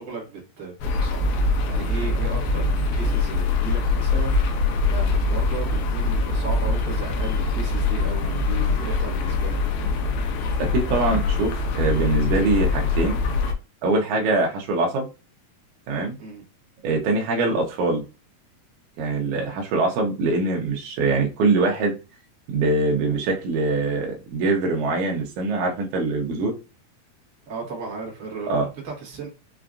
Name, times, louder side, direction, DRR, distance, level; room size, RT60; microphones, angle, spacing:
voice 1, 0.0-9.6 16.2-16.4 27.4-29.3, right 4 dB, 50° right, 0.9 m, -35 dB
sound 1, 0.8-13.5, left 3 dB, 80° left, 1.8 m, -23 dB
voice 2, 10.6-13.2 13.8-15.1 15.9-16.2 16.8-18.0 19.0-22.0 22.5-26.5 28.5-28.7, right 3 dB, 70° right, 2.1 m, -23 dB
5.8 x 2.4 x 2.4 m
omnidirectional pair, 4.1 m